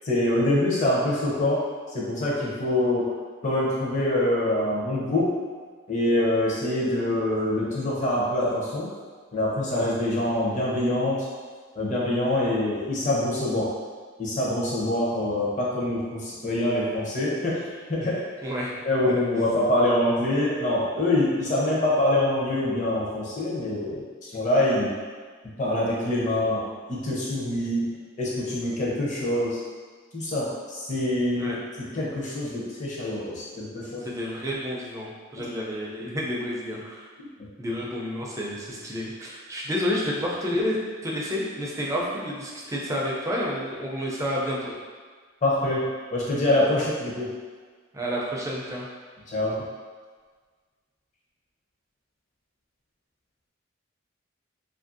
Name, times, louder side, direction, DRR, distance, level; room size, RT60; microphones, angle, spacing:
voice 1, 0.0-1.6 1.9-3.1 3.4-5.3 5.9-8.9 9.3-11.2 11.8-13.7 14.2-17.6 17.9-18.2 18.8-24.9 25.6-27.9 28.2-29.6 30.1-31.5 31.9-34.1 45.4-45.8 46.1-47.3 49.3-49.6, left 1 dB, 35° left, -6 dB, 0.6 m, -25 dB
voice 2, 18.4-18.7 19.1-19.2 31.4-31.6 34.0-37.1 37.6-44.7 47.9-48.9, equal, 15° right, -4 dB, 0.4 m, -30 dB
2.7 x 2.5 x 2.5 m, 1.5 s
head